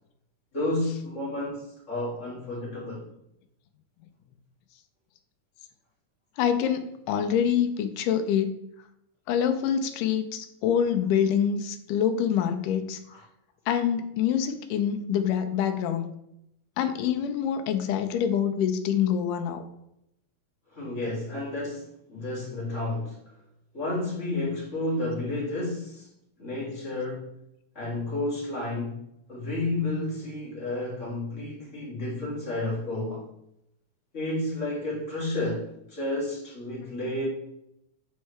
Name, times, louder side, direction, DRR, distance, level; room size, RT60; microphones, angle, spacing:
voice 1, 0.5-3.0 13.1-13.2 20.7-23.2 23.7-26.1 26.4-27.3 27.7-29.0 29.3-33.2 34.1-37.3, left 2 dB, 25° left, -6 dB, 2.2 m, -31 dB
voice 2, 6.4-8.5 9.3-13.0 13.7-16.1 16.8-19.6, left 8 dB, 85° left, 7 dB, 2.2 m, -26 dB
8.2 x 4.5 x 3.2 m, 0.80 s
omnidirectional pair, 3.7 m